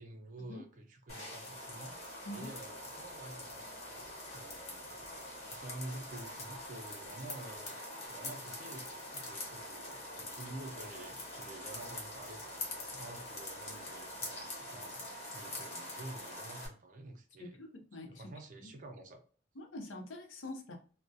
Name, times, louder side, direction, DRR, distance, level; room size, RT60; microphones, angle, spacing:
voice 1, 0.0-2.0 2.3-5.0 5.5-7.8 8.0-15.0 15.3-17.6 18.2-19.2, right 2 dB, 45° right, 0.5 m, -49 dB
sound 1, 1.1-16.7, left 1 dB, 35° left, 0.7 m, -44 dB
voice 2, 17.4-18.3 18.6-18.7 19.5-20.8, left 1 dB, 90° left, 0.6 m, -45 dB
2.3 x 2.0 x 2.6 m
head